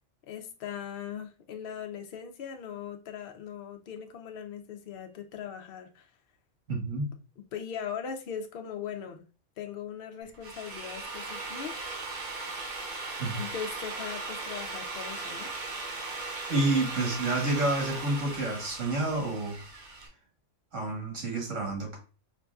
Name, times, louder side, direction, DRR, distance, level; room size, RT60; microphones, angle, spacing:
voice 1, 0.3-6.1 7.4-9.2 9.6-11.9 13.3-15.5, left 8 dB, 60° left, 5 dB, 0.7 m, -39 dB
voice 2, 6.7-7.1 13.2-13.4 16.5-19.6 20.7-22.0, right 2 dB, 85° right, -1 dB, 1.7 m, -29 dB
Drill, 10.2-20.1, right 3 dB, 50° right, 0.6 m, -38 dB
4.7 x 2.5 x 2.2 m, 0.34 s
omnidirectional pair, 1.3 m